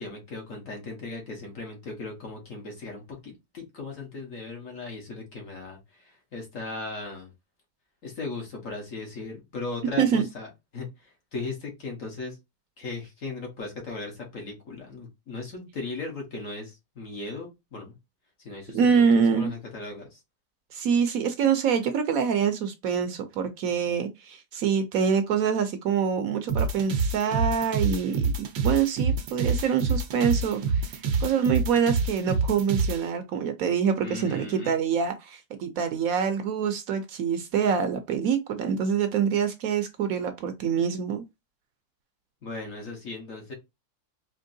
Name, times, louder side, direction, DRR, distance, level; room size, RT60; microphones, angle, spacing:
voice 1, 0.0-7.3 8.0-10.5 10.7-12.4 12.8-17.9 18.4-20.2 34.0-34.8 42.4-43.5, left 3 dB, 55° left, 1.6 m, -37 dB
voice 2, 18.7-19.5 20.7-41.2, right 7 dB, 70° right, 1.0 m, -25 dB
sound 1, 26.5-33.0, right 4 dB, 85° right, 1.3 m, -26 dB
4.5 x 2.8 x 2.6 m
omnidirectional pair, 1.7 m